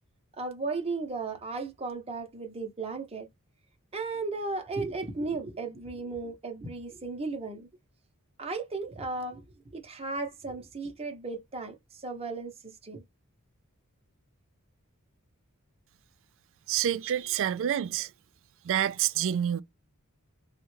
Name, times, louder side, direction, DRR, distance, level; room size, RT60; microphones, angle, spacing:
voice 1, 0.4-3.3 3.9-7.7 8.4-9.4 9.7-13.0, right 3 dB, 30° right, 0.7 m, -35 dB
voice 2, 16.7-18.1 18.7-19.6, right 10 dB, 60° right, 0.3 m, -27 dB
3.5 x 2.1 x 3.1 m
head